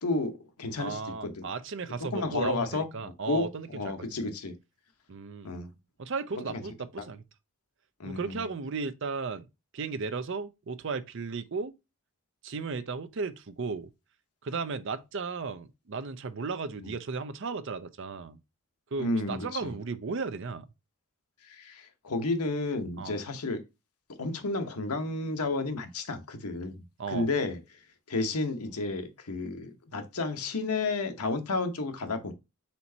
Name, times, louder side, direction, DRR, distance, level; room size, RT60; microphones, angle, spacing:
voice 1, 0.0-1.4 2.1-2.9 3.2-4.6 5.4-5.7 6.5-6.6 8.0-8.4 19.0-19.7 21.5-23.6 24.2-27.6 28.1-32.3, left 3 dB, 85° left, 1.0 m, -32 dB
voice 2, 0.8-4.1 5.1-5.5 6.0-7.2 8.0-9.5 9.7-11.7 12.4-13.9 14.4-18.4 18.9-20.7 23.0-23.2 27.0-27.3, right 4 dB, 55° right, 0.5 m, -35 dB
4.4 x 4.2 x 2.7 m
head